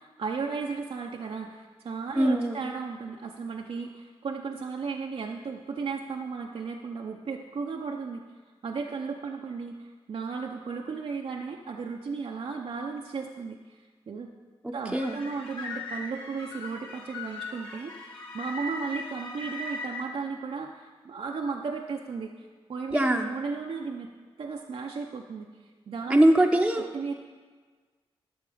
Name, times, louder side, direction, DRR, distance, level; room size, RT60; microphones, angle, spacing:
voice 1, 0.0-8.2 8.6-14.3 14.7-24.1 24.4-26.2 26.7-27.1, right 5 dB, 65° right, 2 dB, 0.7 m, -35 dB
voice 2, 2.2-2.6 14.6-15.2 22.9-23.3 26.1-26.9, right 1 dB, 10° right, 1 dB, 0.7 m, -22 dB
sound 1, 14.9-20.0, left 2 dB, 60° left, 2.1 m, -39 dB
12.0 x 6.6 x 5.0 m, 1.5 s
cardioid pair, 55°, 10 cm